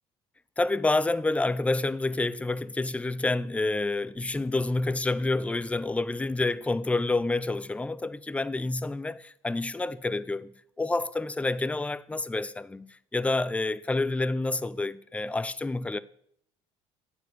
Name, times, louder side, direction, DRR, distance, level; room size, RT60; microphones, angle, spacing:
voice 1, 0.6-16.0, left 2 dB, 10° left, 0.4 m, -28 dB
9.7 x 4.4 x 6.7 m
supercardioid pair, 75°, 15 cm